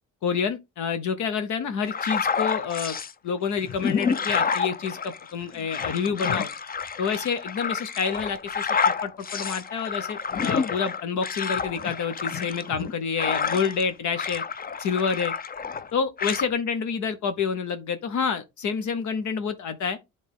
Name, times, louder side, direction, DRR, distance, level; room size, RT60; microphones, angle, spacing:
voice 1, 0.2-3.0 3.2-6.5 7.0-8.7 9.0-14.4 14.8-15.3 15.9-20.0, left 6 dB, 75° left, 1.0 m, -28 dB
sound 1, 1.8-3.1 3.6-13.9 14.1-15.9 16.2-16.5, left 6 dB, 30° left, 0.6 m, -29 dB
10.0 x 4.0 x 3.5 m
cardioid pair, 90°, 30 cm